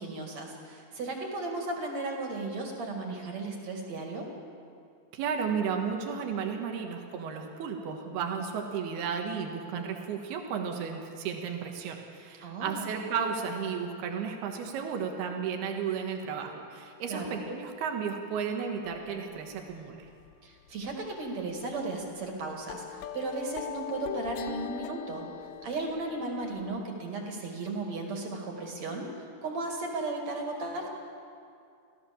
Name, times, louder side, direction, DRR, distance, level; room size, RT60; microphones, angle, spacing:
voice 1, 0.0-4.3 12.4-12.9 17.1-17.4 20.4-25.3 25.6-30.9, right 2 dB, 50° right, 1 dB, 3.3 m, -35 dB
voice 2, 5.1-20.1, right 6 dB, 90° right, 3 dB, 3.5 m, -33 dB
sound 1, 18.8-19.7 20.1-20.3 20.6-20.9 21.3-21.4 22.0-22.1 22.7-26.8, left 12 dB, 80° left, 2.2 m, -41 dB
26.0 x 16.5 x 7.1 m, 2.4 s
omnidirectional pair, 4.4 m